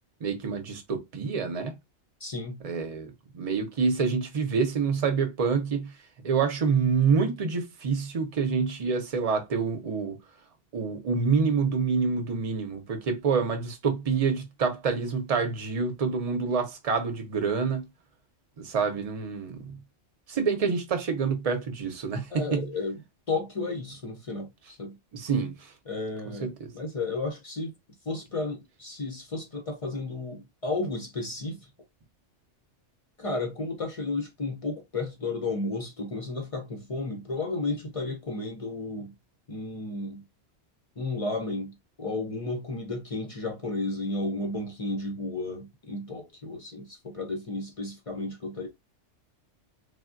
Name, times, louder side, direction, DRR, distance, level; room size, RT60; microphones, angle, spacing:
voice 1, 0.2-1.7 2.6-5.9 6.2-10.2 10.7-17.9 18.6-19.8 20.3-22.7 25.1-25.7 26.4-26.7, right 5 dB, 40° right, 0.5 m, -27 dB
voice 2, 2.2-2.6 22.3-23.0 23.3-25.0 25.9-27.7 28.1-31.6 33.2-39.1 39.5-40.2 41.0-48.7, left 3 dB, 45° left, 0.5 m, -33 dB
3.3 x 2.1 x 2.4 m
omnidirectional pair, 1.3 m